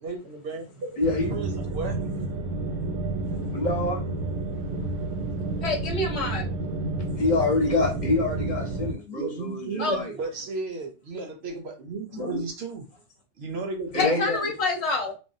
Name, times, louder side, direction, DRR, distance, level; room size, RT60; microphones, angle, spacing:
voice 1, 0.0-1.0 1.3-2.0 9.1-12.8 13.4-14.4, right 3 dB, 65° right, 3 dB, 0.8 m, -34 dB
voice 2, 1.0-1.3 3.5-4.0 7.2-10.1 12.1-12.4 13.9-14.4, left 2 dB, 40° left, 0 dB, 1.0 m, -26 dB
sound 1, 1.0-8.9, right 2 dB, 90° right, 1.0 m, -30 dB
voice 3, 5.6-6.5 9.8-10.0 13.9-15.2, left 3 dB, 65° left, 1 dB, 1.1 m, -27 dB
3.4 x 2.1 x 2.6 m, 0.31 s
omnidirectional pair, 1.3 m